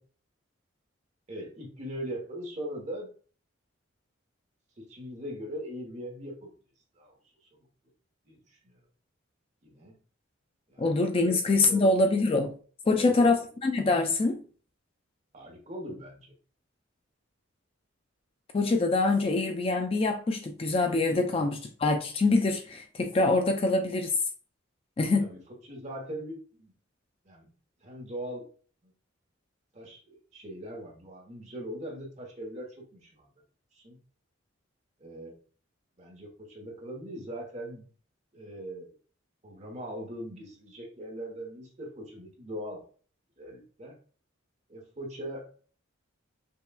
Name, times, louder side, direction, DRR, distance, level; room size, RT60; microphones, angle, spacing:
voice 1, 1.3-3.1 4.8-6.5 7.0-7.1 7.4-7.5 8.3-8.8 9.6-10.0 10.7-11.3 11.6-11.9 12.9-13.4 15.3-16.3 21.3-21.5 25.2-26.7 27.2-27.5 27.8-28.5 28.8-28.9 29.7-33.3 33.7-34.0 35.0-35.4 36.0-37.9 38.3-38.9 39.4-42.9 43.4-44.0 44.7-45.5, equal, 35° right, 1.0 m, -40 dB
voice 2, 10.8-12.5 12.9-14.4 18.5-24.1 25.0-25.3, left 3 dB, 30° left, 0.3 m, -25 dB
5.5 x 2.3 x 2.2 m
head